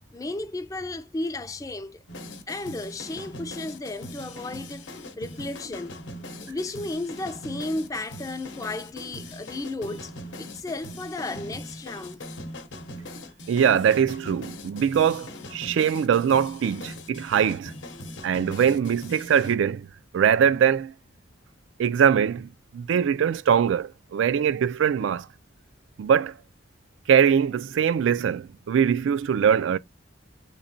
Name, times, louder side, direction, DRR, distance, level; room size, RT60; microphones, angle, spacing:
voice 1, 0.1-2.0 2.5-6.0 6.4-10.1 10.4-12.2, left 2 dB, 20° left, 0.3 m, -34 dB
sound 1, 2.1-19.5, left 1 dB, 75° left, 0.8 m, -40 dB
voice 2, 13.5-17.7 18.2-19.9 20.1-20.9 21.8-25.3 26.0-26.4 27.1-29.8, right 8 dB, 85° right, 0.3 m, -22 dB
3.5 x 3.0 x 2.6 m
head